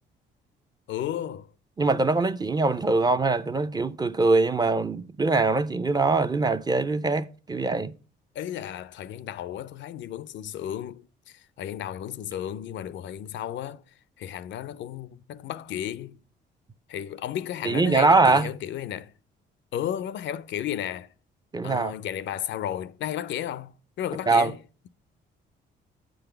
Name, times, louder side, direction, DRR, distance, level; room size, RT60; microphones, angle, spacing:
voice 1, 0.9-1.5 8.3-13.8 14.2-16.2 16.9-19.1 19.7-21.1 21.6-24.6, left 11 dB, 65° left, 0.4 m, -33 dB
voice 2, 1.8-7.9 17.6-18.5 21.5-21.9 24.3-24.5, right 3 dB, 20° right, 0.4 m, -22 dB
8.5 x 3.9 x 6.6 m
cardioid pair, 90°, 20 cm